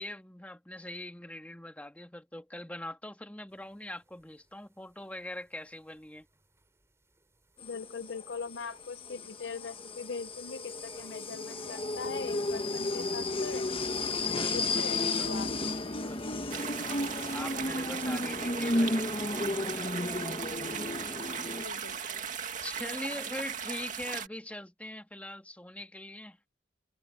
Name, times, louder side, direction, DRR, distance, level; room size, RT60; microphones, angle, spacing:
voice 1, 0.0-6.3 14.3-16.3 17.3-20.2 22.6-26.4, left 1 dB, 10° left, 1.8 m, -43 dB
sound 1, 3.5-19.1, right 4 dB, 15° right, 5.7 m, -60 dB
voice 2, 7.6-13.7 14.3-15.5 18.0-18.3 21.6-22.3 22.8-23.2, left 5 dB, 75° left, 0.8 m, -41 dB
sound 2, 7.6-21.6, left 2 dB, 30° left, 1.4 m, -33 dB
sound 3, 16.5-24.3, right 7 dB, 45° right, 2.3 m, -37 dB
head